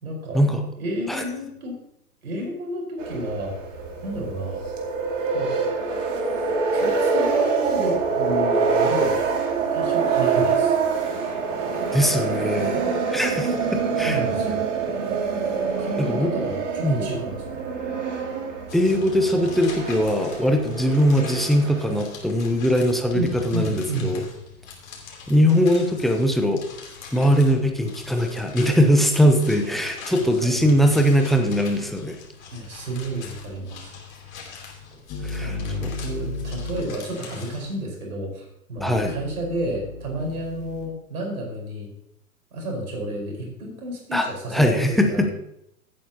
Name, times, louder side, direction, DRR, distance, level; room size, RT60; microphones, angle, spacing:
voice 1, 0.0-0.4 0.8-1.7 2.2-3.5 4.0-4.6 5.3-5.5 6.7-9.2 9.7-10.7 14.0-14.6 15.8-17.6 23.1-24.1 29.6-29.7 30.2-31.2 32.5-33.9 35.4-41.9 42.5-45.3, right 1 dB, 70° right, -1 dB, 5.0 m, -31 dB
sound 1, 3.0-22.1, right 5 dB, 55° right, 2.5 m, -25 dB
voice 2, 11.9-14.2 16.0-16.3 16.8-17.1 18.7-24.2 25.3-26.6 27.1-32.2 35.2-36.0 38.8-39.1 44.1-44.3 44.5-45.3, equal, ahead, 3 dB, 0.5 m, -21 dB
sound 2, 18.7-37.7, left 5 dB, 65° left, 3.3 m, -43 dB
sound 3, 35.1-36.8 38.8-40.9, left 2 dB, 30° left, 1.9 m, -34 dB
16.0 x 8.6 x 2.9 m, 0.77 s
figure-of-eight pair, 115°, 45 cm